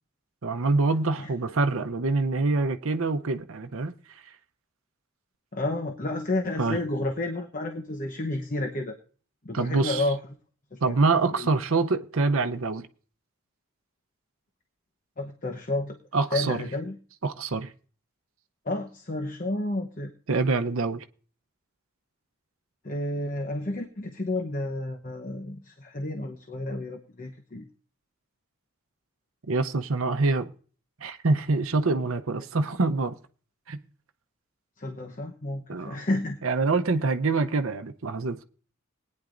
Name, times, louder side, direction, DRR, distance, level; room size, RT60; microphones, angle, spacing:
voice 1, 0.4-4.2 6.6-6.8 9.5-10.0 10.8-12.9 16.1-16.7 17.2-17.7 20.3-21.0 29.5-30.5 31.0-33.2 33.7-33.8 35.7-36.0 36.4-38.4, right 3 dB, 70° right, 0.7 m, -25 dB
voice 2, 5.5-9.0 9.4-10.2 10.7-10.9 11.3-11.5 15.2-16.0 16.3-17.0 18.6-20.1 22.8-27.7 34.8-36.4, left 2 dB, 40° left, 0.9 m, -31 dB
20.5 x 9.6 x 2.5 m
head